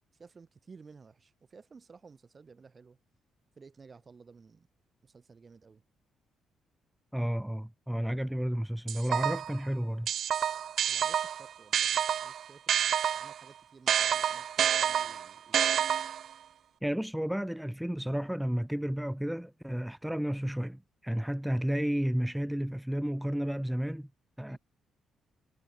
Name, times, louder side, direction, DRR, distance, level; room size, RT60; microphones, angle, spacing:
voice 1, 0.2-3.0 3.6-4.7 5.0-5.8 10.9-15.6 24.5-24.6, right 5 dB, 35° right, 6.9 m, -55 dB
voice 2, 7.1-10.1 16.8-24.1 24.4-24.6, equal, 5° right, 3.1 m, -32 dB
sound 1, 8.9-9.6 10.1-13.4 13.9-16.3, right 9 dB, 65° right, 1.1 m, -28 dB
cardioid pair, 90°, 0 cm